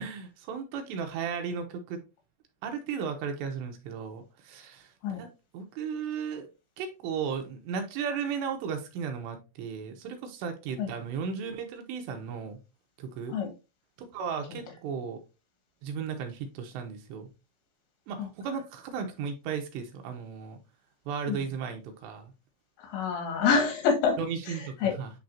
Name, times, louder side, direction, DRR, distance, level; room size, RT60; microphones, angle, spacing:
voice 1, 0.0-2.0 2.6-4.9 5.2-5.3 5.5-6.5 6.8-12.6 13.0-13.4 14.0-15.2 15.8-17.3 18.1-20.6 21.1-22.3 24.2-25.1, right 6 dB, 85° right, 5 dB, 3.1 m, -35 dB
voice 2, 22.8-24.2 24.5-24.9, left 6 dB, 90° left, 3 dB, 3.9 m, -27 dB
10.5 x 3.5 x 2.6 m, 0.28 s
omnidirectional pair, 5.0 m